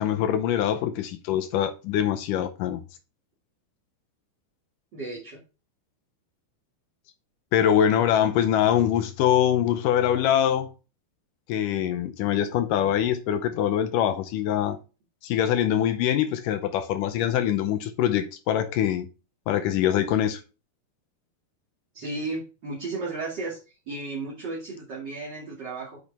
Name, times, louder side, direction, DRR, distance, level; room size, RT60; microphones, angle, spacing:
voice 1, 0.0-2.8 7.5-10.7 11.5-14.8 15.2-19.1 19.5-20.4, left 10 dB, 80° left, 2.0 m, -23 dB
voice 2, 4.9-5.4 21.9-23.6 23.9-26.0, right 3 dB, 35° right, 2.1 m, -34 dB
8.7 x 5.2 x 3.4 m
omnidirectional pair, 4.5 m